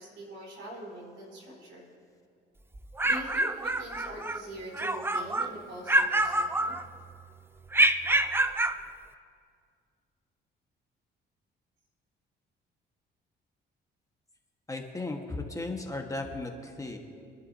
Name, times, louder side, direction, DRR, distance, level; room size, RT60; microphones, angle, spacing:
voice 1, 0.0-1.9 3.0-6.7, right 1 dB, 75° right, -3 dB, 4.3 m, -43 dB
sound 1, 2.7-4.4 4.7-5.5 5.9-7.1 7.7-8.8, right 2 dB, 10° right, 0.6 m, -26 dB
voice 2, 14.7-17.0, left 2 dB, 15° left, 2 dB, 1.4 m, -36 dB
28.5 x 11.0 x 2.8 m, 2.3 s
cardioid pair, 90°, 20 cm